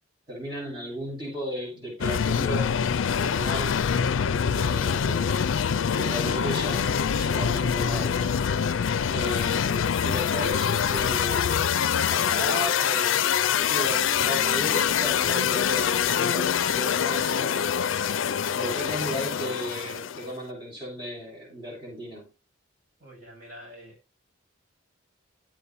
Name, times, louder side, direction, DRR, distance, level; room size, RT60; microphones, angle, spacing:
voice 1, 0.3-2.8 3.1-3.8 4.5-5.4 5.9-8.3 9.1-11.7 12.1-13.1 13.5-17.8 18.6-22.3, equal, 25° right, 6.5 m, -35 dB
sound 1, 2.0-20.3, left 7 dB, 75° left, 0.4 m, -25 dB
voice 2, 23.0-24.1, equal, 45° right, 6.2 m, -47 dB
14.5 x 8.4 x 2.7 m
head